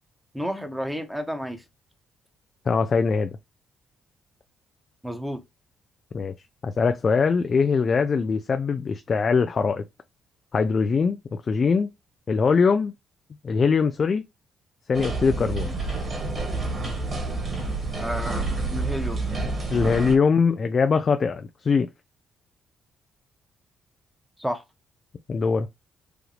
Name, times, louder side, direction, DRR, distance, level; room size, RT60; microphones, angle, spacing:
voice 1, 0.3-1.6 5.0-5.4 18.0-19.2 24.4-24.6, equal, 5° right, 1.1 m, -31 dB
voice 2, 2.7-3.3 6.1-6.3 6.6-9.8 10.5-11.2 11.5-11.9 12.3-12.9 13.4-14.2 14.9-15.7 19.7-21.9 25.3-25.7, left 5 dB, 45° left, 0.4 m, -22 dB
sound 1, 14.9-20.1, right 3 dB, 40° right, 2.1 m, -29 dB
4.9 x 2.6 x 3.3 m
cardioid pair, 90°, 0 cm